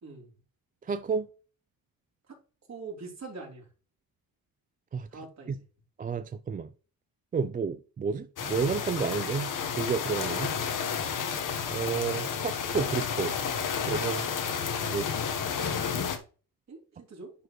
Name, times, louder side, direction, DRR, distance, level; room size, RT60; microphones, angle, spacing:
voice 1, 0.0-0.3 2.3-2.4 2.7-3.7 5.1-5.6 16.7-17.3, right 4 dB, 45° right, 3.5 m, -43 dB
voice 2, 0.9-1.3 4.9-5.1 6.0-6.7 7.3-10.5 11.7-13.4 13.9-14.3 14.8-15.2, right 6 dB, 25° right, 0.4 m, -31 dB
sound 1, 8.4-16.2, left 7 dB, 55° left, 1.3 m, -31 dB
10.5 x 4.5 x 3.1 m
cardioid pair, 100°, 37 cm